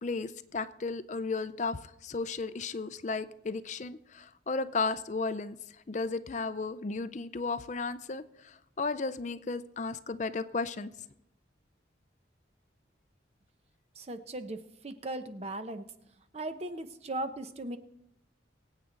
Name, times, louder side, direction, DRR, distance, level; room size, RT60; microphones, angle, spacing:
voice 1, 0.0-5.6 5.9-10.9, left 3 dB, 40° left, 13 dB, 0.5 m, -34 dB
voice 2, 14.0-15.9 16.3-17.8, right 2 dB, 35° right, 9 dB, 0.8 m, -38 dB
23.5 x 8.2 x 3.9 m, 0.79 s
head